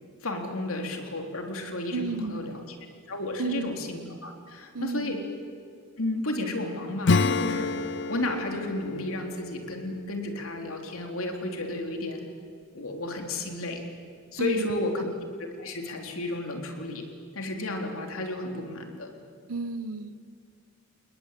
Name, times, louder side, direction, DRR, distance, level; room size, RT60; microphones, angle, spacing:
voice 1, 0.2-2.8 3.1-5.2 6.0-7.8 8.1-12.2 12.7-13.8 14.3-15.1 15.4-17.1 17.3-19.1, left 2 dB, 70° left, 3 dB, 3.7 m, -32 dB
voice 2, 1.9-2.5 3.4-3.8 4.7-5.1 14.4-14.8 19.5-20.2, right 4 dB, 75° right, 13 dB, 1.1 m, -32 dB
Acoustic guitar / Strum, 7.0-11.3, left 3 dB, 55° left, 0.6 m, -30 dB
28.5 x 20.5 x 8.4 m, 2.2 s
head